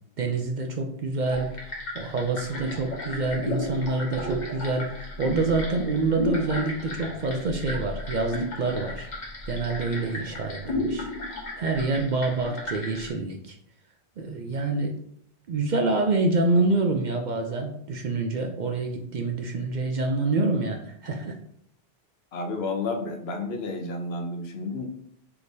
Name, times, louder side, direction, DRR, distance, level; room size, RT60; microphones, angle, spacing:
voice 1, 0.2-1.5 1.9-9.1 9.5-11.1 11.6-13.6 14.2-15.0 15.5-21.4, right 3 dB, 55° right, 4 dB, 0.5 m, -27 dB
sound 1, 1.3-13.1, left 1 dB, 45° left, 1.0 m, -34 dB
voice 2, 22.3-24.9, left 3 dB, 75° left, 4 dB, 0.9 m, -31 dB
4.7 x 3.5 x 2.6 m, 0.69 s
omnidirectional pair, 1.1 m